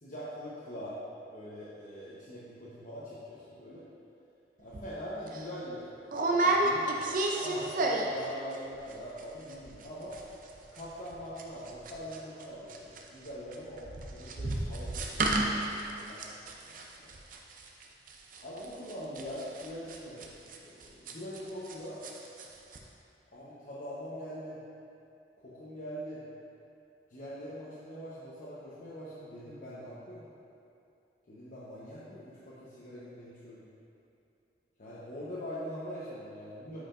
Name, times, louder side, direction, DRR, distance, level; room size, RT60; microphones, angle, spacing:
voice 1, 0.0-1.0 1.3-3.8 4.6-5.8 6.2-7.0 7.4-10.2 10.7-16.3 16.7-17.1 18.4-20.3 20.6-22.0 23.3-24.6 25.4-26.2 27.1-30.3 31.3-33.7 34.8-36.8, equal, 50° left, -10 dB, 1.0 m, -43 dB
sound 1, 4.7-4.9 5.3-5.4 6.1-8.3 8.5-8.9 9.2-9.3 9.5-9.9 10.1-12.4 12.7-21.8 22.0-22.5 22.7-22.8, right 2 dB, 50° right, 0.6 m, -32 dB
8.9 x 5.0 x 2.6 m, 2.6 s
head